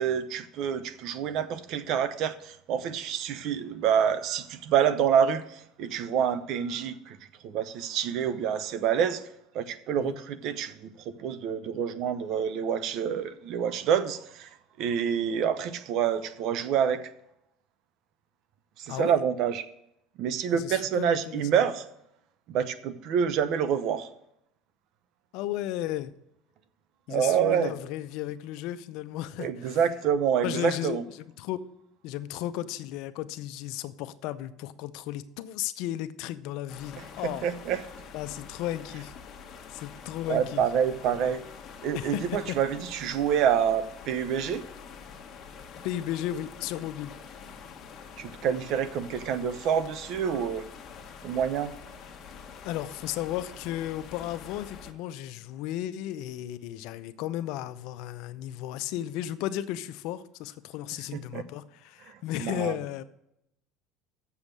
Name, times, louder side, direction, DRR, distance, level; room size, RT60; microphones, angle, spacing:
voice 1, 0.0-7.2 7.4-9.2 9.5-14.5 14.8-17.0 18.8-19.6 20.2-21.8 22.5-24.1 27.1-27.7 29.4-31.0 37.2-37.8 40.3-41.4 41.8-44.6 48.2-50.7 51.2-51.7 61.1-61.4 62.4-62.8, right 8 dB, 60° right, 0.8 m, -27 dB
voice 2, 18.9-19.2 20.5-21.6 25.3-26.1 27.1-29.8 30.4-31.6 32.0-37.5 38.1-39.1 39.7-40.6 41.1-41.3 41.9-42.6 45.8-47.2 52.6-63.0, left 13 dB, 70° left, 0.6 m, -34 dB
sound 1, 36.7-54.9, left 6 dB, 45° left, 1.2 m, -46 dB
7.2 x 7.1 x 6.6 m
supercardioid pair, 105°, 0 cm